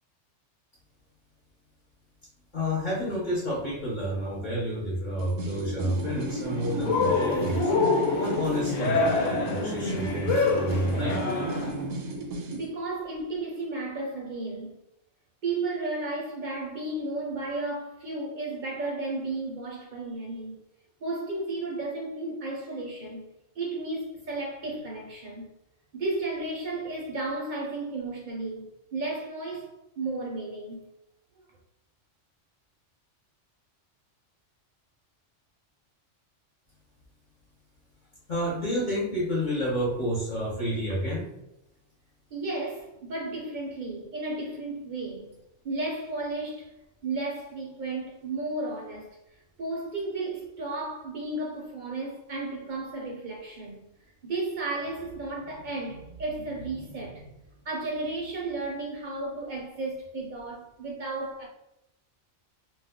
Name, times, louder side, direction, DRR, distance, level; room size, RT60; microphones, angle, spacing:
voice 1, 2.5-7.7 8.1-11.2 38.3-41.3, equal, 45° left, 0.9 m, -30 dB
sound 1, 5.2-12.7, right 2 dB, 90° right, 1.0 m, -33 dB
Cheering, 6.8-11.8, left 4 dB, 85° left, 1.0 m, -26 dB
voice 2, 10.8-11.2 12.5-14.7 15.4-20.6 21.0-23.2 23.6-25.5 25.9-30.9 42.3-45.3 45.6-46.7 47.0-49.2 49.6-53.8 54.2-57.4 57.6-61.5, right 2 dB, 55° right, 0.6 m, -33 dB
2.4 x 2.1 x 3.5 m
omnidirectional pair, 1.3 m